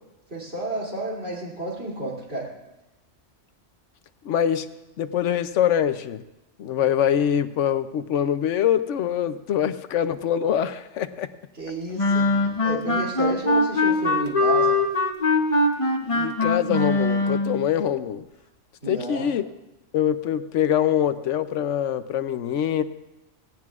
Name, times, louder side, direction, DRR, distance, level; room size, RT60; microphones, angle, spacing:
voice 1, 0.3-2.5 11.5-14.8 18.8-19.3, right 1 dB, 60° right, -4 dB, 3.3 m, -31 dB
voice 2, 4.2-4.7 5.0-6.2 6.6-11.3 16.0-18.3 18.9-19.5 19.9-22.8, left 9 dB, 80° left, 12 dB, 1.0 m, -24 dB
sound 1, 12.0-17.6, left 2 dB, 30° left, 1.0 m, -22 dB
18.0 x 17.5 x 2.4 m, 0.97 s
omnidirectional pair, 1.2 m